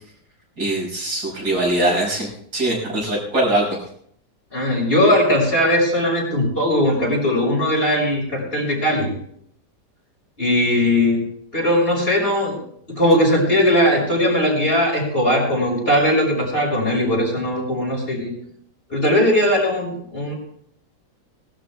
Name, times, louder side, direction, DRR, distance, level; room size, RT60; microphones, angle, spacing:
voice 1, 0.6-3.7, right 1 dB, 65° right, -3 dB, 6.8 m, -22 dB
voice 2, 4.5-9.1 10.4-11.2 11.5-12.5 12.9-18.3 18.9-20.3, left 1 dB, 35° left, -3 dB, 6.4 m, -19 dB
21.5 x 13.0 x 3.6 m, 0.65 s
omnidirectional pair, 1.8 m